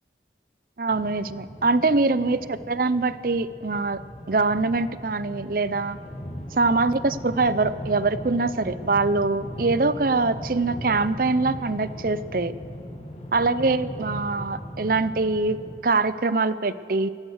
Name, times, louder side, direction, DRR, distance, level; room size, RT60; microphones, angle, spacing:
voice 1, 0.8-6.0 6.5-12.5 13.3-15.6 15.8-17.1, right 3 dB, 50° right, 14 dB, 0.6 m, -23 dB
sound 1, 0.9-15.8, equal, 35° left, 2.2 m, -38 dB
23.0 x 18.0 x 6.5 m, 2.2 s
head